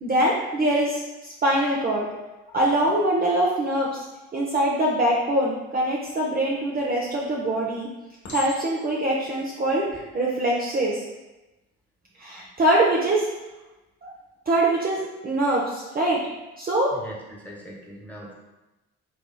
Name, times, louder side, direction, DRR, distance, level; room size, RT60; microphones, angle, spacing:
voice 1, 0.0-2.1 2.5-4.1 4.3-7.9 8.3-11.0 12.2-13.3 14.0-14.1 14.5-16.2 16.6-16.9, right 1 dB, 25° right, -5 dB, 0.7 m, -23 dB
Chink clink, 6.8-7.3 8.2-9.0 9.8-10.0, left 4 dB, 55° left, 1.1 m, -39 dB
voice 2, 16.9-18.3, equal, 5° left, -4 dB, 1.2 m, -41 dB
4.1 x 2.9 x 2.2 m, 1.1 s
hypercardioid pair, 45°, 36 cm